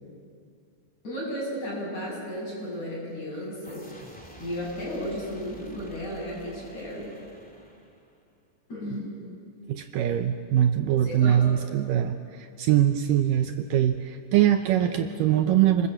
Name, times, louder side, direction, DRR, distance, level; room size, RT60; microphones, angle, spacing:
voice 1, 1.0-4.0 4.4-7.1 8.7-9.2 11.0-11.7, equal, 50° left, -4 dB, 9.0 m, -34 dB
sound 1, 3.6-8.3, left 1 dB, 5° left, 1.7 m, -49 dB
voice 2, 9.7-15.9, right 11 dB, 75° right, 7 dB, 2.2 m, -23 dB
28.0 x 21.0 x 7.9 m, 2.4 s
omnidirectional pair, 4.3 m